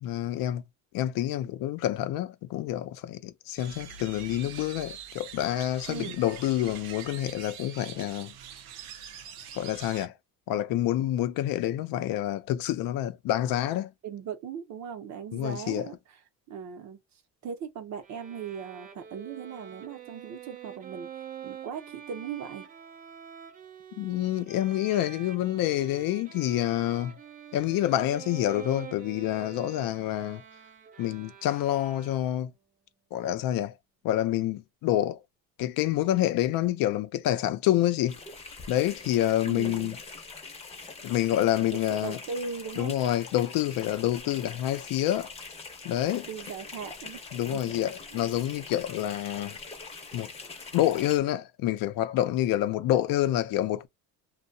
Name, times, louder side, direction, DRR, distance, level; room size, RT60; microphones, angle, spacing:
voice 1, 0.0-0.6 0.9-8.3 9.6-10.1 10.5-13.9 15.3-15.9 24.0-27.1 27.5-30.4 31.0-32.5 33.1-33.7 34.0-35.2 35.6-38.2 38.7-39.9 41.0-42.2 42.8-45.3 45.8-46.2 47.3-49.6 50.1-50.3 50.7-53.9, left 13 dB, 65° left, 0.5 m, -27 dB
sound 1, 3.6-10.1, right 7 dB, 85° right, 0.7 m, -44 dB
voice 2, 5.9-6.2 14.0-16.2 16.5-17.0 17.4-22.7 39.5-40.0 42.0-43.0 46.1-47.2 47.5-47.7 48.1-48.3, right 6 dB, 50° right, 0.7 m, -39 dB
Bowed string instrument, 18.0-32.5, right 8 dB, 25° right, 0.3 m, -46 dB
sound 2, 38.1-51.2, left 3 dB, 15° left, 0.7 m, -43 dB
2.7 x 2.1 x 2.6 m
cardioid pair, 150°, 36 cm